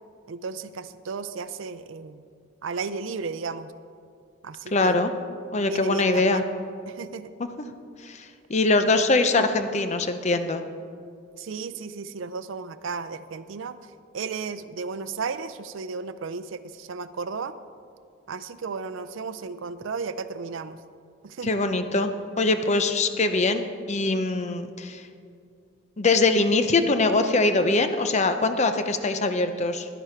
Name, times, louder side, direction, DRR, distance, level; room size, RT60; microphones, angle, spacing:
voice 1, 0.3-2.2 2.6-3.7 4.4-5.0 5.7-6.4 6.9-7.3 11.4-17.5 18.3-20.8 21.2-21.6, right 4 dB, 70° right, 13 dB, 0.5 m, -34 dB
voice 2, 4.7-5.1 5.5-6.4 8.0-8.2 8.5-10.6 21.4-22.1 22.4-25.0 26.0-29.9, left 3 dB, 35° left, 9 dB, 0.6 m, -22 dB
11.0 x 10.5 x 4.5 m, 2.3 s
head